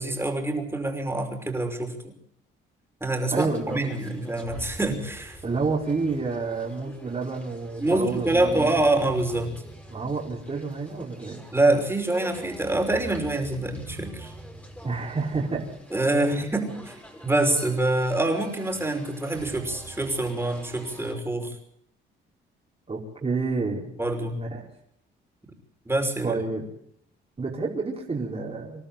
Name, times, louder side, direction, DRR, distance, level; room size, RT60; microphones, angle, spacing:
voice 1, 0.0-2.1 3.0-5.4 7.8-9.6 11.5-14.3 15.9-16.9 17.2-21.6 24.0-24.4 25.9-26.4, right 2 dB, 10° right, 4 dB, 5.5 m, -25 dB
sound 1, 3.2-21.1, right 1 dB, 5° left, 5.5 m, -44 dB
voice 2, 3.3-3.9 5.4-8.8 9.9-11.4 14.8-15.6 16.2-16.5 22.9-23.9 24.3-24.6 26.2-26.6 27.4-28.9, right 4 dB, 30° right, -3 dB, 5.0 m, -29 dB
26.5 x 12.5 x 8.9 m, 0.72 s
cardioid pair, 90°, 20 cm